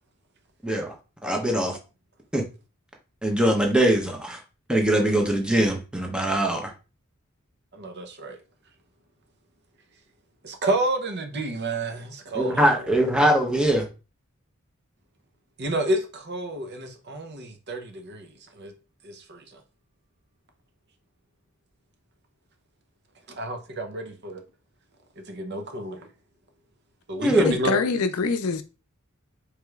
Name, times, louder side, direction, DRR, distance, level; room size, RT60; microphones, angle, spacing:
voice 1, 0.6-1.0 1.2-1.8 2.3-2.4 3.2-4.4 4.7-6.7 12.3-13.9 27.2-27.5, right 1 dB, 5° right, 0.8 m, -22 dB
voice 2, 7.7-8.4 10.4-12.7 15.6-18.7 19.0-19.4 23.3-24.4 25.3-26.1 27.1-27.8, right 1 dB, 50° right, 0.8 m, -30 dB
voice 3, 27.4-28.6, left 4 dB, 80° left, 0.5 m, -24 dB
4.8 x 3.1 x 2.4 m
head